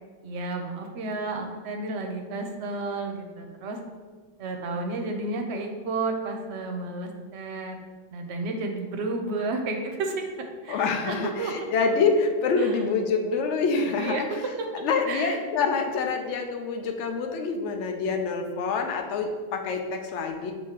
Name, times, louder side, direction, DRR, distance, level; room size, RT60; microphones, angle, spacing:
voice 1, 0.2-3.8 4.4-7.8 8.1-10.2 10.6-11.5 12.6-12.7 14.0-15.4, right 3 dB, 65° right, 4 dB, 0.8 m, -32 dB
voice 2, 10.7-14.2 14.7-20.5, left 4 dB, 70° left, 4 dB, 0.8 m, -26 dB
6.3 x 2.8 x 2.8 m, 1.5 s
omnidirectional pair, 1.3 m